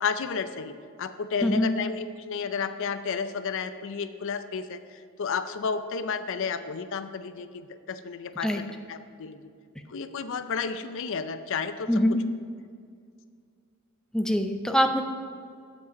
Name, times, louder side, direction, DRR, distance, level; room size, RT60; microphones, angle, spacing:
voice 1, 0.0-9.4 9.9-11.9, left 5 dB, 60° left, 10 dB, 0.5 m, -32 dB
voice 2, 11.9-12.2 14.1-15.0, equal, 5° left, 5 dB, 0.5 m, -23 dB
8.2 x 7.8 x 5.2 m, 2.2 s
head